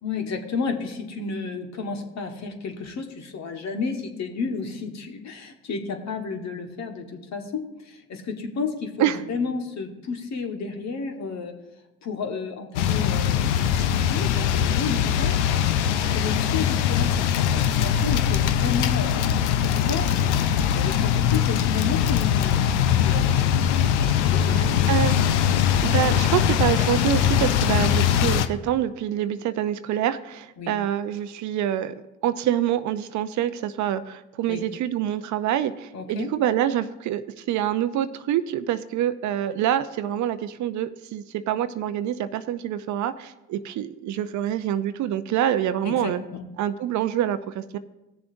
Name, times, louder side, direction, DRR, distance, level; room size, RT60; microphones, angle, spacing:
voice 1, 0.0-11.5 12.0-15.7 16.1-19.3 19.6-20.1 20.7-23.5 24.0-24.9 30.6-30.8 34.5-34.6 35.9-36.4 45.8-46.5, left 5 dB, 50° left, 4 dB, 1.5 m, -32 dB
sound 1, 12.8-28.5, left 9 dB, 85° left, 0.6 m, -21 dB
voice 2, 24.5-25.2 25.8-31.9 32.2-46.2 46.6-47.8, right 11 dB, 60° right, 13 dB, 0.6 m, -26 dB
17.5 x 7.0 x 2.6 m, 0.98 s
hypercardioid pair, 55°, 34 cm